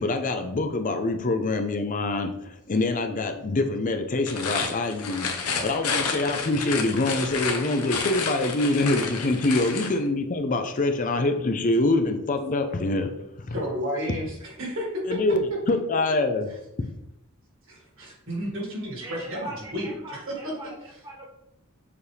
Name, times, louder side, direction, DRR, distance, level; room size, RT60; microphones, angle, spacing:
voice 1, 0.0-5.3 5.6-13.1 13.4-13.6 15.1-15.4 15.7-16.5, left 2 dB, 35° left, 6 dB, 0.5 m, -25 dB
sound 1, 4.2-10.0, left 5 dB, 85° left, 1.0 m, -30 dB
voice 2, 13.5-15.2 17.7-20.5, equal, 60° right, -1 dB, 2.1 m, -32 dB
voice 3, 19.0-21.3, right 1 dB, 20° right, -2 dB, 0.6 m, -40 dB
6.8 x 4.2 x 3.4 m, 0.85 s
head